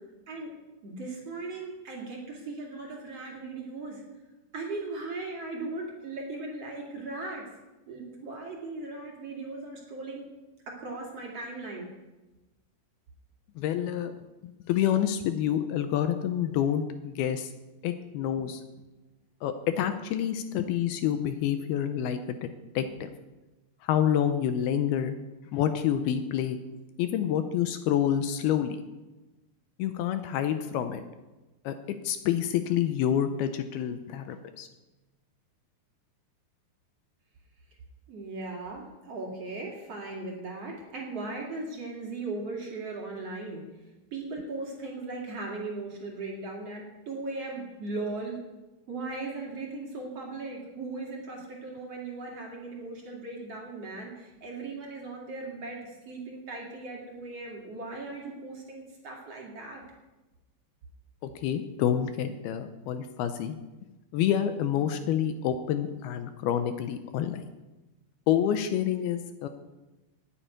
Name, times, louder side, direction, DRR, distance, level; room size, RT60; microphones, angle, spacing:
voice 1, 0.8-4.0 4.5-7.5 7.9-10.2 10.7-11.9 38.1-43.6 44.1-48.4 48.9-59.8, right 3 dB, 45° right, -1 dB, 2.9 m, -38 dB
voice 2, 13.6-14.1 14.4-17.5 17.8-18.6 19.4-22.5 22.8-23.1 23.8-25.2 25.5-26.6 27.0-28.8 29.8-31.0 31.7-34.7 61.2-63.6 64.1-67.4 68.3-69.5, left 10 dB, 80° left, 9 dB, 2.5 m, -28 dB
9.7 x 9.1 x 9.5 m, 1.1 s
omnidirectional pair, 4.7 m